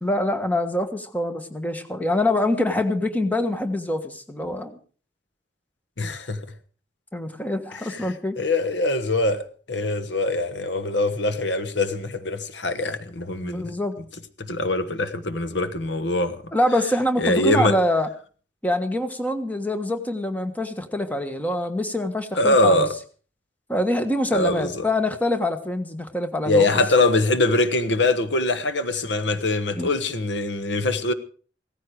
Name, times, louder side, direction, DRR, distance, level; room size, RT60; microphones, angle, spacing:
voice 1, 0.0-4.7 7.1-8.4 13.4-14.0 16.5-18.1 18.6-22.9 23.7-26.8 29.8-29.9, left 1 dB, 10° left, 1.4 m, -25 dB
voice 2, 6.0-6.4 7.7-13.7 14.4-16.4 17.2-17.7 22.4-22.9 24.3-24.8 26.4-31.1, left 2 dB, 85° left, 1.4 m, -23 dB
17.0 x 14.5 x 4.8 m
head